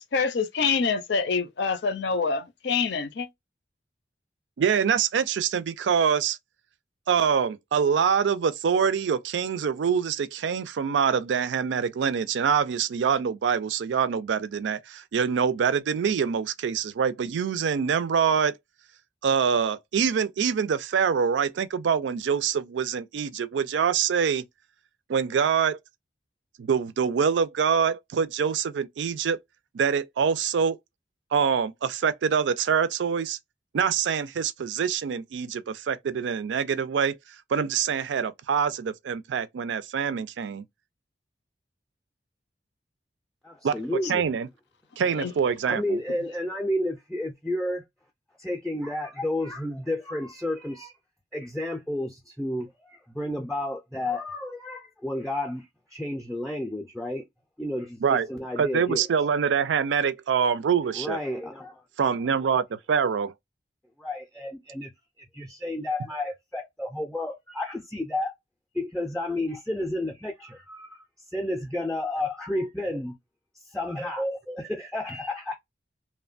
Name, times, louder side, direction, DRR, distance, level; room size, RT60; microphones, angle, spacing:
voice 1, 0.0-3.3 45.2-45.3, left 5 dB, 75° left, 0.5 m, -26 dB
voice 2, 4.6-6.4 7.1-18.6 19.2-24.4 25.1-25.8 26.6-29.4 29.7-30.8 31.3-33.4 33.7-37.2 37.5-40.6 43.6-44.5 45.0-46.0 58.0-58.3 58.6-61.2 62.0-63.3, right 7 dB, 85° right, 0.4 m, -25 dB
voice 3, 43.4-44.2 45.6-47.8 48.4-50.9 51.3-57.2 57.6-59.1 60.9-61.8 64.0-64.9 65.3-68.3 68.7-71.0 71.3-73.2 73.7-75.6, left 1 dB, 5° left, 0.4 m, -31 dB
2.9 x 2.1 x 2.4 m
head